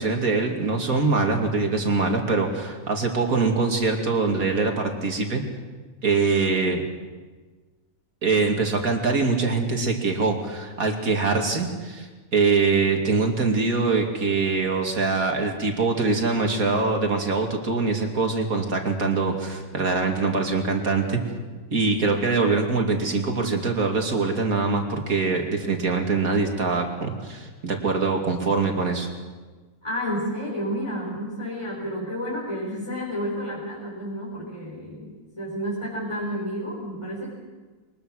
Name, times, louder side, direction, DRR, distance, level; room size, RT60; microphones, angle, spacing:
voice 1, 0.0-5.4 6.0-6.8 8.2-21.2 21.7-29.1, right 4 dB, 90° right, 2 dB, 2.9 m, -23 dB
voice 2, 29.8-37.3, equal, 20° left, -5 dB, 4.8 m, -31 dB
23.0 x 21.0 x 6.4 m, 1.3 s
omnidirectional pair, 1.4 m